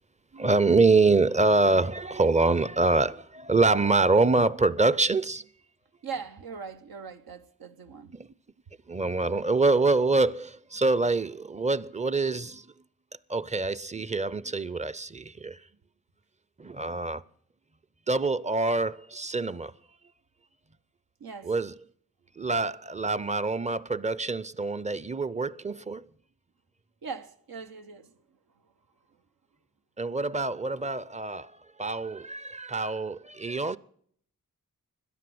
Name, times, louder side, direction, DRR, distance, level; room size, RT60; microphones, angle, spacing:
voice 1, 0.3-5.4 8.2-8.3 8.9-12.7 13.3-15.6 16.6-17.2 18.1-19.7 21.4-21.7 22.4-26.0 30.0-31.5 31.8-33.8, right 3 dB, 20° right, 0.5 m, -25 dB
voice 2, 6.0-8.2 21.2-21.5 27.0-28.7, right 5 dB, 85° right, 0.8 m, -41 dB
14.0 x 10.0 x 7.7 m
cardioid pair, 45°, 35 cm